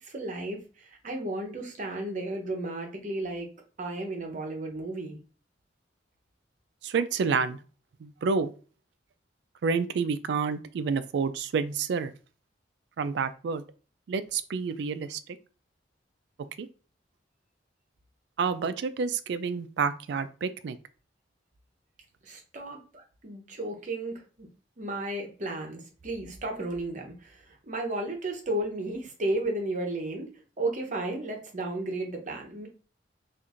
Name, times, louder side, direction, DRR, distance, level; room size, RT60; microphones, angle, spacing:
voice 1, 0.0-3.5 3.8-5.2 22.2-24.5 24.8-30.3 30.6-32.7, right 2 dB, 45° right, 2 dB, 0.8 m, -33 dB
voice 2, 6.8-7.6 8.0-8.5 9.6-12.1 13.0-13.6 14.1-15.2 16.6-16.7 18.4-20.8, right 5 dB, 65° right, 13 dB, 0.3 m, -29 dB
4.4 x 2.5 x 2.5 m, 0.36 s
head